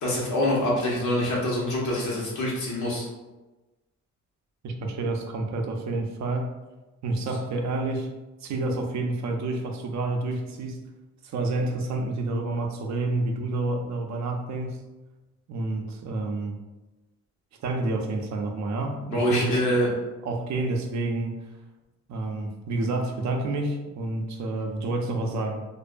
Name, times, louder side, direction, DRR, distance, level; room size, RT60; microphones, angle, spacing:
voice 1, 0.0-3.1 19.1-19.9, left 1 dB, 70° left, -4 dB, 1.0 m, -25 dB
voice 2, 4.6-6.6 7.0-8.1 8.4-10.8 11.2-14.8 15.5-16.6 17.6-19.7 20.2-21.4 22.1-25.7, right 2 dB, 65° right, 3 dB, 0.5 m, -29 dB
2.5 x 2.2 x 2.5 m, 1.1 s
cardioid pair, 110°, 30 cm